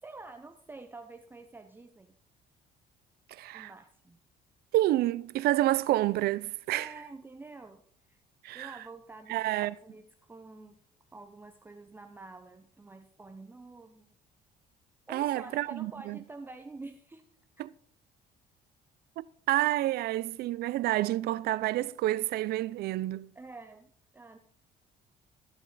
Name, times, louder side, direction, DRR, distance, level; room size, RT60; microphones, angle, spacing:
voice 1, 0.0-2.1 3.5-4.2 6.7-7.8 8.1-8.2 8.5-10.8 11.1-14.1 15.1-17.3 23.3-24.4, right 3 dB, 10° right, 0.6 m, -48 dB
voice 2, 3.3-3.7 4.7-6.9 8.4-8.7 9.3-9.7 15.1-16.2 17.6-17.7 19.2-23.3, right 15 dB, 70° right, 0.4 m, -29 dB
14.0 x 5.3 x 4.0 m
cardioid pair, 110°, 17 cm